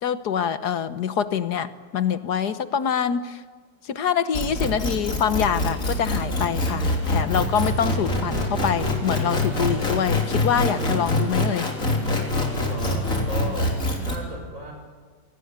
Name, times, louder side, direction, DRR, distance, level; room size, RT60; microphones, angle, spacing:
voice 1, 0.0-3.4 3.8-11.7, left 8 dB, 60° left, 12 dB, 1.5 m, -25 dB
sound 1, 4.3-14.2, left 2 dB, 45° left, 3.8 m, -24 dB
voice 2, 12.7-13.7 14.0-14.7, equal, 40° right, 2 dB, 7.2 m, -34 dB
27.5 x 19.0 x 9.5 m, 1.5 s
omnidirectional pair, 2.0 m